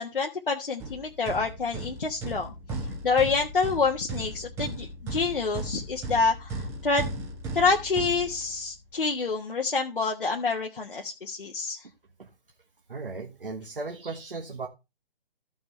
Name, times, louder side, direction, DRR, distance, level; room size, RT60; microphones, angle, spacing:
voice 1, 0.0-2.5 3.0-7.0 7.5-11.8, left 4 dB, 65° left, 1.4 m, -27 dB
sound 1, 0.8-8.8, right 2 dB, 10° right, 1.0 m, -36 dB
voice 2, 12.9-14.7, right 3 dB, 70° right, 1.7 m, -36 dB
14.0 x 6.2 x 3.1 m
figure-of-eight pair, 140°, 29 cm